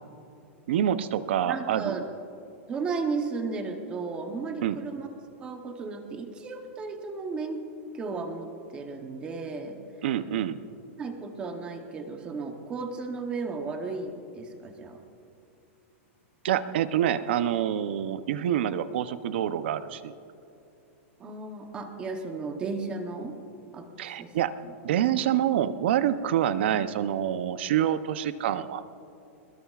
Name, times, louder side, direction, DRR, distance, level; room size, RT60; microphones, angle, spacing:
voice 1, 0.7-2.0 4.6-4.8 10.0-10.6 16.4-20.1 24.0-24.5 24.8-28.8, right 10 dB, 55° right, 12 dB, 0.7 m, -26 dB
voice 2, 1.4-2.1 2.7-5.1 5.4-7.6 7.9-9.8 11.0-15.0 21.2-23.4 23.7-24.3, right 4 dB, 15° right, 5 dB, 0.9 m, -34 dB
23.5 x 21.0 x 2.4 m, 2.7 s
supercardioid pair, 180°, 7 cm